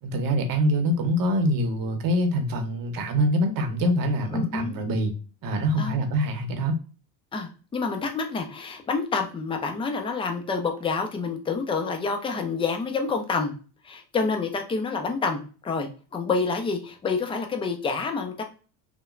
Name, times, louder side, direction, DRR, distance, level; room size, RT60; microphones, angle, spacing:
voice 1, 0.0-5.1 5.4-6.7, equal, 45° right, 6 dB, 0.9 m, -24 dB
voice 2, 4.3-4.8 5.8-6.0 7.3-13.5 13.8-18.4, left 4 dB, 10° left, 4 dB, 0.4 m, -28 dB
2.9 x 2.2 x 2.4 m, 0.36 s
supercardioid pair, 95°, 48 cm